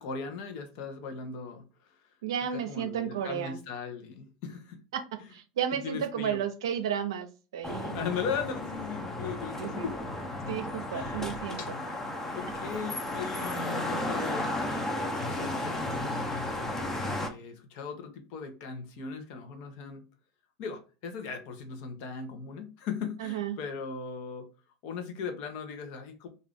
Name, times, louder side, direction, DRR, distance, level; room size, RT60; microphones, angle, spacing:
voice 1, 0.0-1.9 2.5-4.8 5.2-5.3 5.8-6.4 7.9-9.9 10.9-11.3 11.6-14.8 15.2-16.2 17.0-20.0 20.6-24.4 24.8-26.3, left 5 dB, 60° left, 0.9 m, -38 dB
voice 2, 2.2-3.6 4.9-7.3 7.5-8.0 9.6-9.9 10.5-11.6 23.2-23.6, right 9 dB, 85° right, 0.5 m, -33 dB
sound 1, 7.6-17.3, left 1 dB, 15° left, 0.7 m, -34 dB
2.6 x 2.5 x 3.4 m
hypercardioid pair, 105°, 2 cm